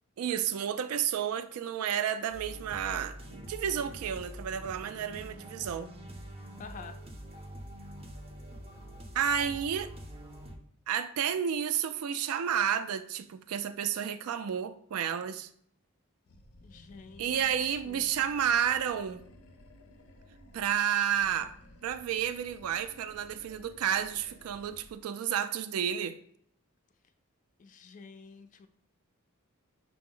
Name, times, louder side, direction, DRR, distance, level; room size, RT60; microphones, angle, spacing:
voice 1, 0.2-5.9 9.1-9.9 10.9-15.5 17.2-19.2 20.5-21.5 21.8-26.2, right 9 dB, 85° right, 0.3 m, -31 dB
sound 1, 2.3-10.6, equal, 25° right, 0.5 m, -45 dB
voice 2, 6.6-7.0 16.6-18.1 27.6-28.7, left 5 dB, 35° left, 0.3 m, -49 dB
Animal, 16.3-20.8 21.1-25.0, left 1 dB, 90° left, 0.5 m, -55 dB
5.8 x 2.0 x 3.7 m
head